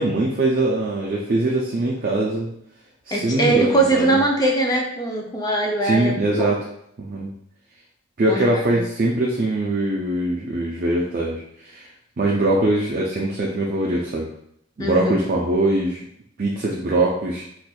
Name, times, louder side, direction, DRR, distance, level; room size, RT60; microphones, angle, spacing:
voice 1, 0.0-2.5 3.1-4.2 5.8-6.6 7.0-7.3 8.2-11.9 12.2-14.3 14.8-16.0 16.4-17.4, right 2 dB, 45° right, -2 dB, 0.4 m, -22 dB
voice 2, 3.1-6.1 6.4-6.5 8.2-8.8 14.8-15.1, right 2 dB, 20° left, 0 dB, 0.5 m, -21 dB
4.1 x 2.5 x 2.3 m, 0.74 s
head